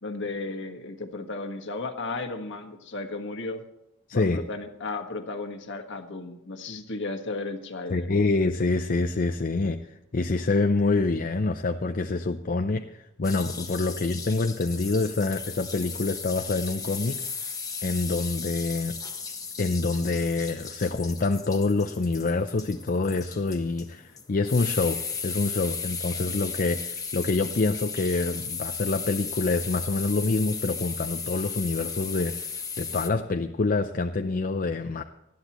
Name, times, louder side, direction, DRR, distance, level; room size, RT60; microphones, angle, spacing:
voice 1, 0.0-3.6 4.1-8.1, left 3 dB, 60° left, 6 dB, 1.6 m, -34 dB
voice 2, 4.1-4.4 7.9-17.2 17.8-19.0 19.6-35.0, left 3 dB, 45° left, 6 dB, 0.6 m, -26 dB
sound 1, 13.2-33.1, left 5 dB, 15° left, 1.3 m, -36 dB
19.5 x 13.5 x 3.0 m, 0.89 s
head